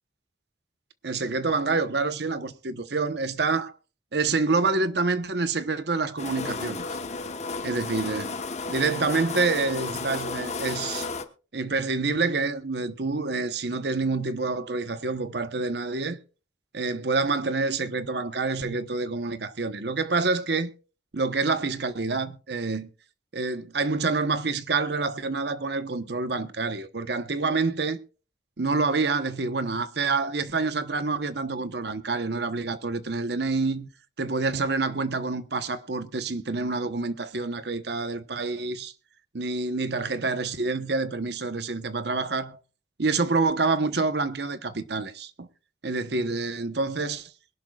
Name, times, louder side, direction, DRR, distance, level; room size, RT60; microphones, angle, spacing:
voice 1, 1.0-3.7 4.1-6.9 7.6-8.4 8.7-11.1 11.5-16.2 16.7-20.7 21.1-22.9 23.3-28.0 28.6-33.9 34.2-38.9 39.3-42.6 43.0-45.5 45.8-47.2, right 3 dB, 60° right, 1.0 m, -27 dB
sound 1, 6.2-11.2, left 4 dB, 35° left, 1.1 m, -33 dB
22.5 x 11.5 x 2.4 m
head